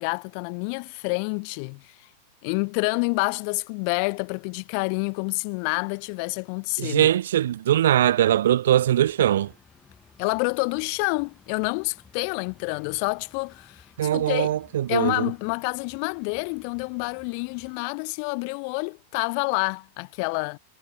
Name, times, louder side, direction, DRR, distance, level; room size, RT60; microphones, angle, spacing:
voice 1, 0.0-1.9 2.4-7.1 10.2-13.8 14.1-14.5 14.9-20.6, left 40 dB or more, 50° left, 0.7 m, -28 dB
voice 2, 6.8-9.5 14.0-15.3, right 11 dB, 80° right, 0.4 m, -21 dB
sound 1, 8.8-17.8, left 6 dB, 15° left, 6.4 m, -56 dB
supercardioid pair, 140°, 0 cm